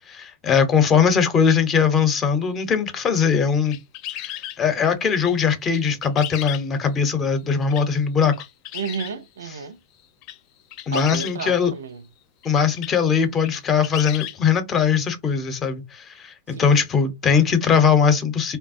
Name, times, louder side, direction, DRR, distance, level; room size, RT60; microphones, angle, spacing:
voice 1, 0.1-3.8 4.6-8.3 10.9-11.7 12.4-18.6, left 6 dB, 30° left, 0.7 m, -20 dB
sound 1, 2.6-2.7 3.1-4.6 5.2-5.4 5.7-6.9 7.7-7.9 8.3-9.2 10.0-10.4 10.7-11.4 12.4-12.5 12.8-12.9 13.4-14.4, left 13 dB, 50° left, 0.3 m, -34 dB
voice 2, 8.7-9.8 10.9-12.0 16.5-16.8, right 6 dB, 85° right, 0.3 m, -32 dB
3.3 x 2.1 x 2.5 m
hypercardioid pair, 120°, 0 cm